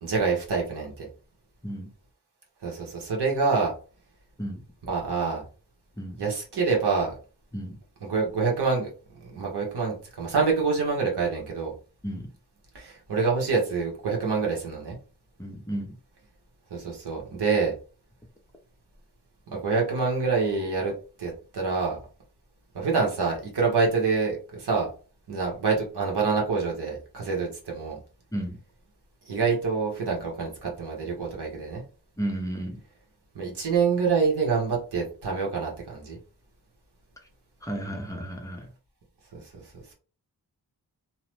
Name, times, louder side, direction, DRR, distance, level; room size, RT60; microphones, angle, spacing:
voice 1, 0.0-1.1 2.6-3.7 4.9-5.4 6.2-7.1 8.0-8.9 9.2-11.7 12.7-15.0 16.7-17.7 19.5-20.9 21.2-22.0 22.7-24.9 25.3-28.0 29.3-31.8 33.3-36.2 39.3-39.6, right 4 dB, 75° right, -1 dB, 1.2 m, -26 dB
voice 2, 15.4-15.9 28.3-28.6 32.2-32.8 37.6-38.7, right 1 dB, 10° left, 2 dB, 0.5 m, -33 dB
2.9 x 2.1 x 3.1 m, 0.36 s
wide cardioid pair, 165°, 40 cm